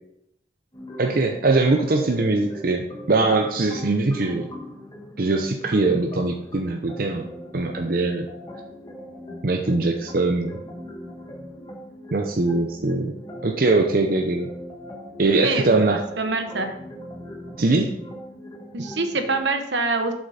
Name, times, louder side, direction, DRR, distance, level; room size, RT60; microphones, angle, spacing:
sound 1, 0.7-19.4, equal, 25° left, 1.4 m, -40 dB
voice 1, 1.0-4.5 5.2-7.3 7.5-8.3 9.4-10.6 12.1-13.1 13.4-14.5 15.2-16.0 17.6-17.9, right 3 dB, 50° right, 3 dB, 0.6 m, -21 dB
voice 2, 15.4-16.8 18.7-20.1, right 3 dB, 70° right, 6 dB, 1.0 m, -25 dB
7.5 x 6.1 x 4.1 m, 0.80 s
head